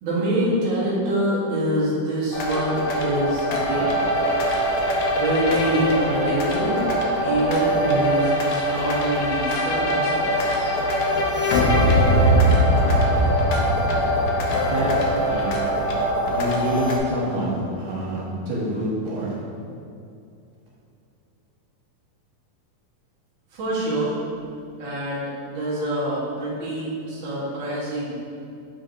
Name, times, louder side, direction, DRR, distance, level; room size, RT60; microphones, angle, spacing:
voice 1, 0.0-4.0 5.1-6.9 7.2-10.7 23.5-24.2 24.8-28.1, right 1 dB, 50° right, -9 dB, 1.6 m, -25 dB
sound 1, 2.3-17.0, equal, 80° left, 1.6 m, -22 dB
voice 2, 14.6-16.0 16.3-19.3, right 1 dB, 75° right, -5 dB, 2.8 m, -27 dB
7.6 x 4.6 x 2.7 m, 2.6 s
omnidirectional pair, 4.1 m